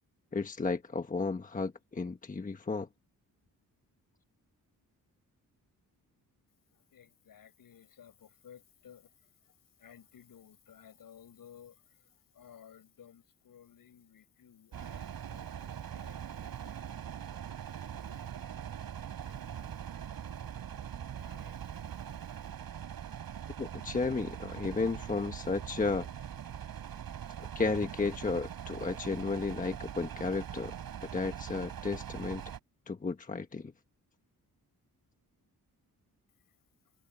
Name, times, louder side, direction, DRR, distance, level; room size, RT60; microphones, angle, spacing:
voice 1, 0.3-2.9 23.6-26.1 27.5-30.7 31.0-32.4 32.9-33.7, left 4 dB, 20° left, 1.3 m, -33 dB
voice 2, 6.9-9.1 9.8-12.0 12.3-18.2 18.9-19.7 20.2-20.5 21.2-22.1, left 8 dB, 70° left, 7.7 m, -57 dB
sound 1, 14.7-32.6, right 9 dB, 75° right, 5.6 m, -42 dB
wide cardioid pair, 150°, 36 cm